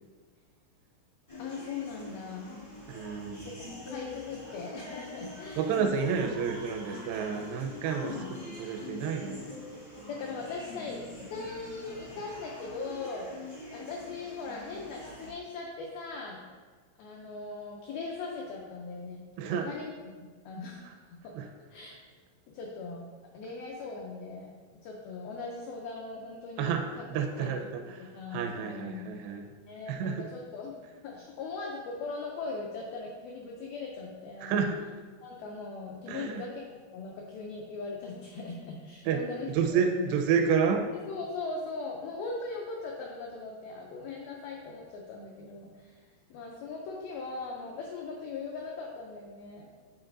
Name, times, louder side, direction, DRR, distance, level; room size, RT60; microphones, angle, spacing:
sound 1, 1.3-15.3, left 2 dB, 60° left, 0.4 m, -44 dB
voice 1, 1.4-2.6 3.6-5.7 8.0-8.3 10.1-13.3 13.7-16.4 17.0-19.2 19.5-19.9 20.5-21.4 21.7-21.9 22.5-23.1 23.3-24.5 24.8-27.0 27.3-27.5 28.1-29.1 29.7-30.8 31.0-34.6 35.2-40.1 41.1-46.0 46.3-49.7, left 4 dB, 85° left, -1 dB, 2.1 m, -39 dB
voice 2, 2.9-3.5 5.6-9.5 19.4-19.7 20.8-20.9 21.3-21.5 26.6-26.8 27.1-29.5 29.9-30.3 34.4-34.8 36.1-36.4 39.1-39.2 39.5-40.9, right 6 dB, 85° right, 5 dB, 2.5 m, -30 dB
9.0 x 4.0 x 3.8 m, 1.5 s
omnidirectional pair, 5.0 m